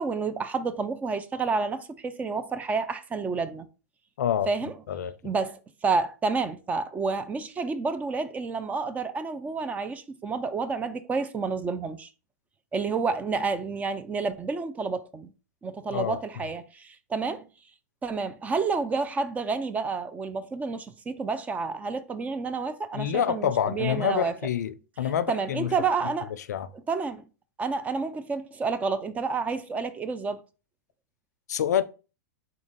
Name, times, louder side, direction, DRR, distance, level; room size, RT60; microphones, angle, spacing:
voice 1, 0.0-3.7 4.5-4.7 5.2-12.1 12.7-15.3 15.6-17.4 18.0-24.3 25.3-26.3 26.9-27.2 27.6-30.4, right 4 dB, 15° right, 0.4 m, -29 dB
voice 2, 4.2-4.5 4.9-5.1 15.9-16.2 22.9-25.7 26.5-26.7 31.5-31.8, left 9 dB, 75° left, 0.4 m, -27 dB
3.8 x 2.4 x 3.7 m
hypercardioid pair, 110°, 9 cm